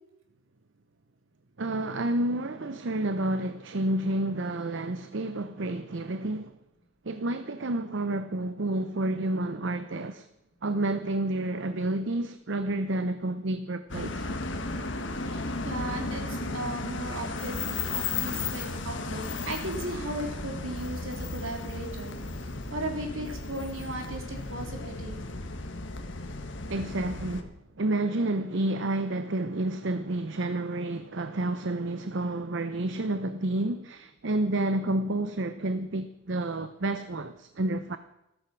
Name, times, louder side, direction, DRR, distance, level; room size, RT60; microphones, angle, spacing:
voice 1, 1.6-6.6 7.0-10.3 10.6-14.4 26.7-38.0, right 2 dB, 60° right, 0.7 m, -30 dB
sound 1, 13.9-27.4, left 3 dB, 60° left, 1.5 m, -34 dB
voice 2, 15.2-25.2, right 1 dB, 80° right, 3.3 m, -37 dB
14.0 x 14.0 x 6.0 m
head